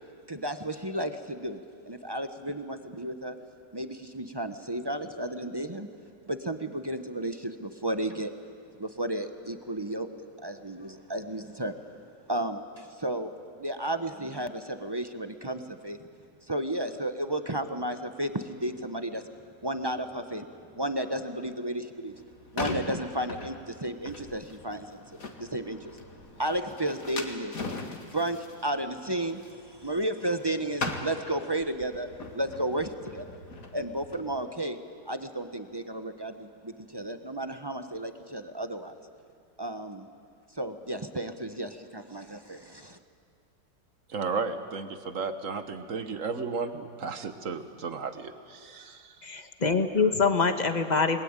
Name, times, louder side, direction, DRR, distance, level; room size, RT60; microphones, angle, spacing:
voice 1, 0.3-3.4 3.7-5.9 6.3-8.3 8.8-10.1 10.4-11.9 12.3-13.3 13.6-16.1 16.5-19.2 19.6-20.4 20.7-22.1 22.5-26.0 26.4-27.6 28.1-33.3 33.7-34.8 35.1-38.9 39.6-40.1 40.5-43.0, right 1 dB, 20° right, 8 dB, 0.7 m, -33 dB
sound 1, 22.1-30.5 30.7-34.4, left 3 dB, 50° left, 2.5 m, -40 dB
voice 2, 44.1-49.4, right 4 dB, 50° right, 9 dB, 1.6 m, -34 dB
voice 3, 49.2-51.2, left 4 dB, 25° left, 7 dB, 1.4 m, -25 dB
29.5 x 21.0 x 8.9 m, 2.2 s
omnidirectional pair, 1.9 m